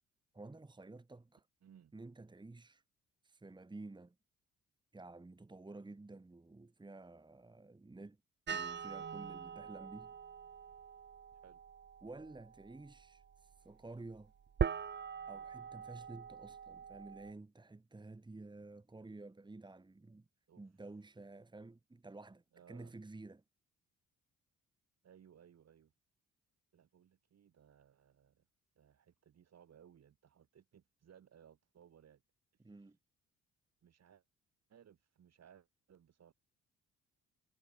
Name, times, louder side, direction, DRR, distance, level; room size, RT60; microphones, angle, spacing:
voice 1, 0.3-1.4 1.9-2.8 3.2-4.2 4.9-8.2 8.5-10.1 12.0-14.3 15.3-20.3 20.6-23.4 32.6-33.0, right 2 dB, 15° right, 1.9 m, -52 dB
voice 2, 1.6-1.9 11.4-11.6 20.5-20.6 22.5-22.9 25.0-25.9 26.7-28.5 28.8-32.2 32.6-32.7 33.8-34.2 34.7-36.3, right 8 dB, 60° right, 7.3 m, -63 dB
sound 1, 8.5-17.3, right 7 dB, 35° right, 1.2 m, -43 dB
cardioid pair, 90°, 30 cm